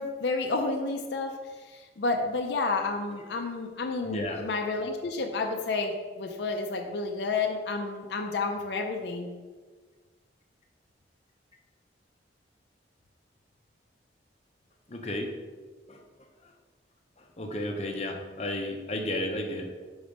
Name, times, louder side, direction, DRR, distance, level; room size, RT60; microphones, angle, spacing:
voice 1, 0.0-1.3 1.6-9.3, left 3 dB, 70° left, 3 dB, 0.5 m, -30 dB
voice 2, 4.0-4.4 14.9-15.3 15.9-16.0 17.4-19.7, left 1 dB, 35° left, 2 dB, 0.7 m, -32 dB
5.1 x 3.9 x 5.2 m, 1.4 s
head